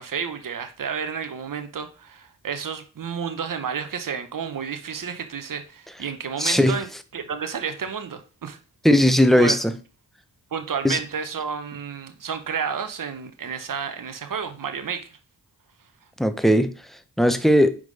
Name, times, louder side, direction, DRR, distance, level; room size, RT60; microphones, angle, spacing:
voice 1, 0.0-6.9 7.1-8.6 9.3-9.6 10.5-15.1, right 6 dB, 55° right, 1.0 m, -31 dB
voice 2, 6.4-6.8 8.8-9.7 10.8-11.0 16.2-16.7 17.2-17.8, equal, ahead, 0.8 m, -18 dB
4.8 x 3.8 x 5.2 m
cardioid pair, 40°, 39 cm